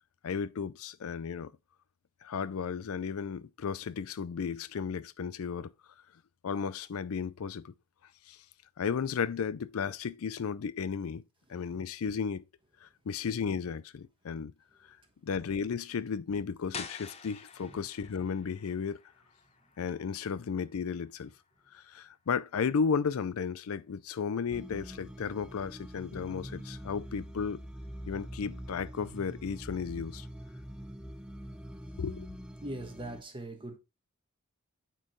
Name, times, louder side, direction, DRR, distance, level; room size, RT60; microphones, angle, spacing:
voice 1, 0.2-1.5 2.2-5.7 6.4-7.7 8.3-8.4 8.8-11.2 11.5-12.4 12.8-14.5 15.2-19.0 19.8-21.3 21.7-27.6 28.1-30.3 32.0-32.3, left 6 dB, 80° left, 0.4 m, -34 dB
sound 1, 16.7-22.4, left 5 dB, 30° left, 0.7 m, -48 dB
sound 2, 24.5-33.2, equal, 5° right, 0.5 m, -44 dB
voice 2, 32.6-33.8, right 1 dB, 25° right, 1.3 m, -41 dB
8.7 x 4.5 x 3.1 m
head